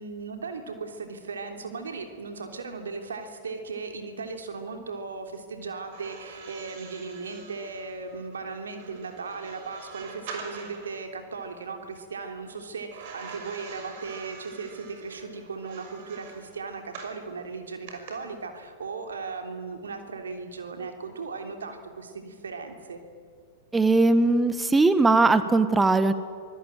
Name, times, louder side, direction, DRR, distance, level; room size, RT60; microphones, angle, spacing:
voice 1, 0.0-23.0, right 4 dB, 80° right, 5 dB, 3.3 m, -37 dB
sound 1, 5.8-11.0 12.9-17.2 17.9-18.1, right 5 dB, 55° right, 5.8 m, -45 dB
voice 2, 23.7-26.1, right 3 dB, 10° right, 12 dB, 1.7 m, -20 dB
25.5 x 20.0 x 9.2 m, 2.1 s
hypercardioid pair, 105°, 0 cm